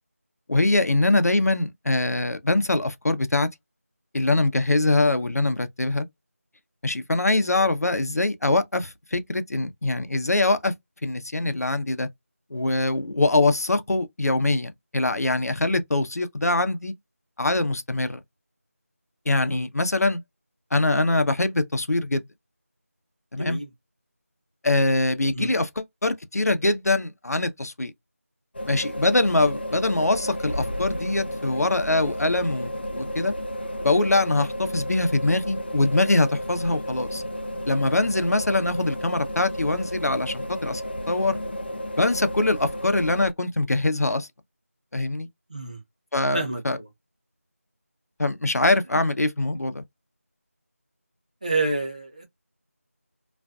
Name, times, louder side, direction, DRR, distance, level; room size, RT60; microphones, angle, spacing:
voice 1, 0.5-3.5 4.1-6.1 6.8-10.7 11.0-12.1 12.5-16.9 17.4-18.2 19.3-20.2 20.7-22.2 23.3-23.6 24.6-27.9 28.7-33.3 33.8-37.2 37.7-40.8 41.1-41.4 42.0-44.3 44.9-45.3 46.1-46.8 48.2-49.8, left 2 dB, 85° left, 0.6 m, -23 dB
voice 2, 23.3-23.7 25.3-25.5 45.5-45.8 46.3-46.9 51.4-52.2, right 2 dB, 30° right, 0.8 m, -29 dB
sound 1, 28.5-43.3, equal, 40° left, 0.4 m, -32 dB
2.4 x 2.2 x 2.4 m
figure-of-eight pair, 175°, 8 cm